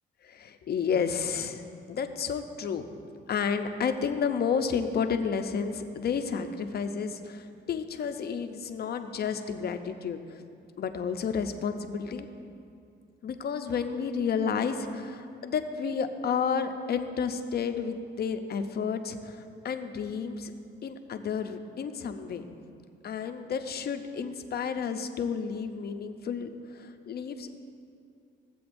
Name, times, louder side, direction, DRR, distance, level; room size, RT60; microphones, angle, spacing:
voice 1, 0.2-2.9 3.3-10.4 10.8-12.3 13.2-20.5 20.8-22.4 23.0-27.5, left 6 dB, 55° left, 7 dB, 0.7 m, -31 dB
15.5 x 7.7 x 2.6 m, 2.4 s
cardioid pair, 90°, 20 cm